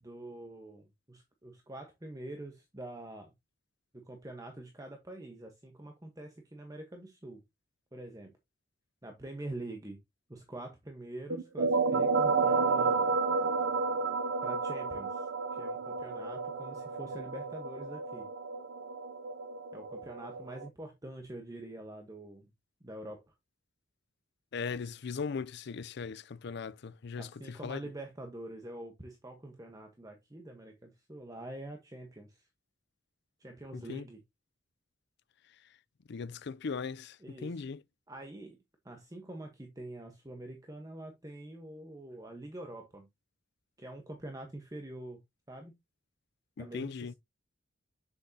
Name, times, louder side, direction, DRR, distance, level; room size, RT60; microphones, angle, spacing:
voice 1, 0.0-3.3 3.9-7.4 7.9-8.3 9.0-10.0 10.3-13.1 14.4-18.3 19.7-22.5 22.8-23.3 27.2-32.4 33.4-34.2 37.2-37.6 38.1-38.6 38.8-43.1 43.8-45.2 45.5-45.7 46.6-47.1, right 1 dB, 20° right, 1.1 m, -45 dB
sound 1, 11.3-20.7, right 4 dB, 60° right, 0.5 m, -31 dB
voice 2, 24.5-27.8 33.7-34.1 36.1-37.8 46.6-47.1, left 5 dB, 55° left, 0.4 m, -39 dB
7.4 x 6.9 x 2.8 m
head